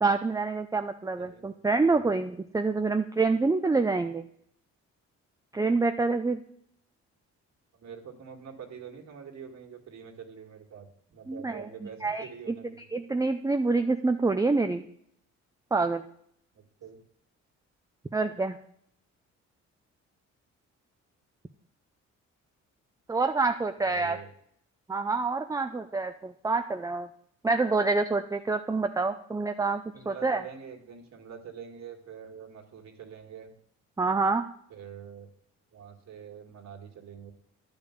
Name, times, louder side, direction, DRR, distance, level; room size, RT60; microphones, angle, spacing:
voice 1, 0.0-4.2 5.5-6.4 11.3-11.7 12.0-12.3 12.9-14.8 15.7-16.0 18.1-18.6 23.1-24.2 24.9-27.1 27.4-30.4 34.0-34.5, right 3 dB, 10° right, 7 dB, 0.5 m, -27 dB
voice 2, 1.2-1.6 7.7-12.9 16.5-17.0 23.8-24.3 29.9-33.5 34.7-35.3 35.7-37.3, right 7 dB, 60° right, 3 dB, 2.1 m, -45 dB
10.5 x 5.2 x 8.2 m, 0.68 s
cardioid pair, 90°, 30 cm